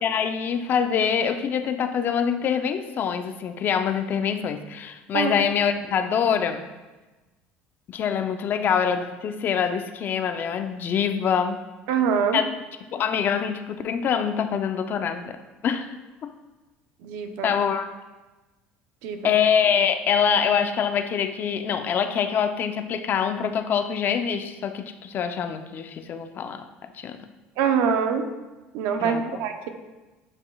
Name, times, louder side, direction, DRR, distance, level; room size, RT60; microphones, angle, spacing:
voice 1, 0.0-6.7 7.9-11.6 12.3-12.4 12.9-15.4 15.6-15.9 16.2-16.3 17.4-17.9 19.2-26.6 27.0-27.2 29.0-29.4, left 7 dB, 45° left, 7 dB, 0.6 m, -25 dB
voice 2, 11.9-12.4 17.0-17.5 19.0-19.3 27.6-28.3 28.7-29.7, right 7 dB, 80° right, 6 dB, 0.8 m, -24 dB
10.5 x 5.3 x 2.3 m, 1.2 s
supercardioid pair, 105°, 5 cm